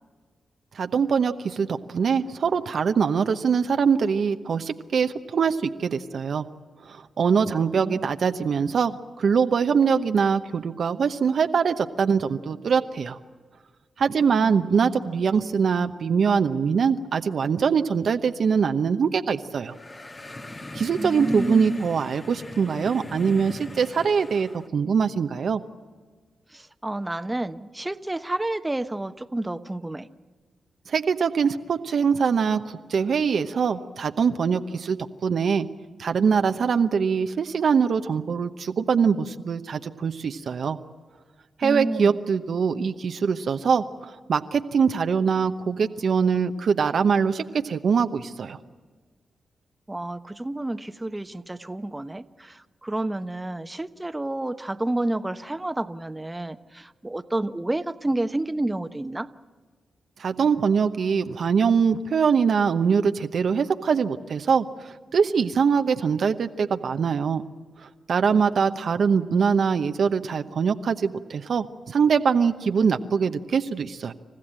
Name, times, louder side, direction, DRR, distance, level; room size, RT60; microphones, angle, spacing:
voice 1, 0.7-6.4 6.9-13.2 14.0-19.7 20.7-25.6 30.9-32.6 32.9-35.7 36.0-40.8 41.6-48.6 60.2-67.4 68.1-74.1, right 6 dB, 70° right, 8 dB, 0.9 m, -23 dB
voice 2, 7.5-8.1 14.4-14.9 21.0-21.9 26.5-30.1 41.6-42.2 49.9-59.3 68.6-68.8, right 1 dB, 20° right, 10 dB, 1.0 m, -30 dB
sound 1, 19.6-24.7, left 2 dB, 35° left, 1.8 m, -39 dB
28.5 x 15.0 x 8.9 m, 1.5 s
supercardioid pair, 40°, 0 cm